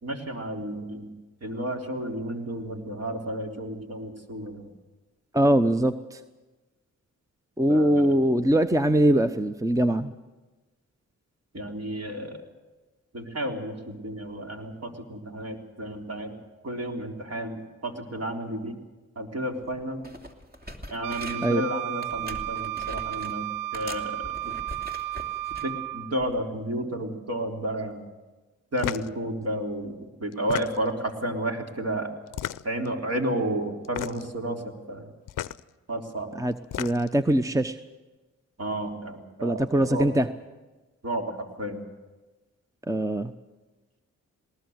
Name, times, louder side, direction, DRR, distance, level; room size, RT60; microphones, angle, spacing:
voice 1, 0.0-1.1 1.4-4.7 7.7-8.2 11.5-12.4 13.1-16.4 16.6-18.8 19.2-20.0 20.9-24.5 25.6-28.0 28.7-29.9 30.2-32.1 32.6-35.1 35.9-36.3 38.6-40.1 41.0-41.8, right 1 dB, 50° right, 2 dB, 3.7 m, -32 dB
voice 2, 5.3-6.2 7.6-10.1 21.4-21.6 36.3-37.8 39.4-40.3 42.9-43.3, right 1 dB, 10° right, 11 dB, 0.8 m, -22 dB
sound 1, 19.6-19.8 20.0-21.6 22.0-23.4 23.7-25.7 26.2-26.4, equal, 30° right, 2.8 m, -42 dB
Wind instrument woodwind instrument, 21.0-26.2, right 14 dB, 85° right, 0.6 m, -33 dB
sound 2, 28.8-29.1 30.3-31.0 32.3-32.9 33.8-34.3 35.3-35.6 36.5-37.2, left 12 dB, 70° left, 0.6 m, -33 dB
19.5 x 18.5 x 8.0 m, 1.2 s
supercardioid pair, 40°, 33 cm